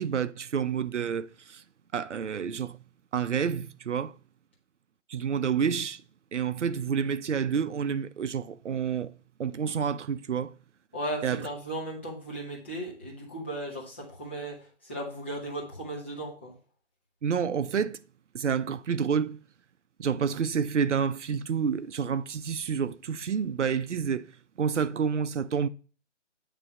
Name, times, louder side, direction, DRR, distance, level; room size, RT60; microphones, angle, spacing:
voice 1, 0.0-1.6 1.9-2.8 3.1-4.2 5.1-6.0 6.3-9.1 9.4-10.5 11.2-11.4 17.2-18.0 18.3-19.4 20.0-24.3 24.6-25.7, right 7 dB, 70° right, 0.7 m, -29 dB
voice 2, 10.9-16.5, right 1 dB, 10° left, 0.6 m, -36 dB
8.9 x 3.3 x 5.4 m
hypercardioid pair, 160°, 37 cm